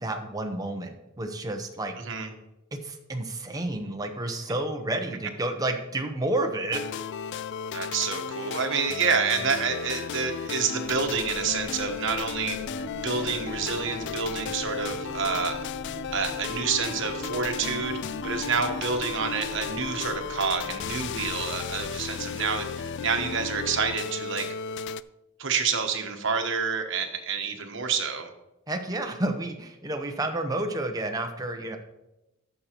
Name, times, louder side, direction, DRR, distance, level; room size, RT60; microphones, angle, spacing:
voice 1, 0.0-1.9 2.7-6.8 28.7-31.8, right 2 dB, 15° right, 4 dB, 0.8 m, -30 dB
sound 1, 6.7-25.0, left 6 dB, 55° left, 0.3 m, -34 dB
voice 2, 7.7-12.6 13.0-15.6 16.1-18.0 18.2-24.5 25.4-28.3, right 5 dB, 60° right, 5 dB, 1.2 m, -28 dB
sound 2, 10.8-23.2 23.6-23.7, equal, 35° left, 3.5 m, -48 dB
sound 3, 12.7-20.2, right 4 dB, 15° left, 0.9 m, -43 dB
14.0 x 6.8 x 3.0 m, 0.94 s
head